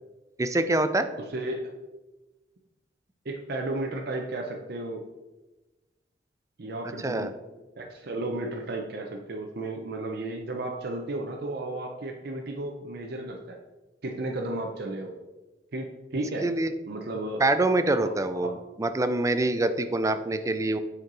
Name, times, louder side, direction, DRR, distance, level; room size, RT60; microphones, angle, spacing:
voice 1, 0.4-1.1 7.0-7.3 16.4-16.7 17.4-18.5 18.8-20.8, right 2 dB, 20° right, 10 dB, 0.4 m, -25 dB
voice 2, 1.3-1.7 3.2-5.0 6.6-7.3 7.8-13.6 14.0-15.2 15.7-16.5 16.9-17.4 18.4-18.5, right 2 dB, 60° right, 1 dB, 0.7 m, -33 dB
7.6 x 4.5 x 3.9 m, 1.1 s
head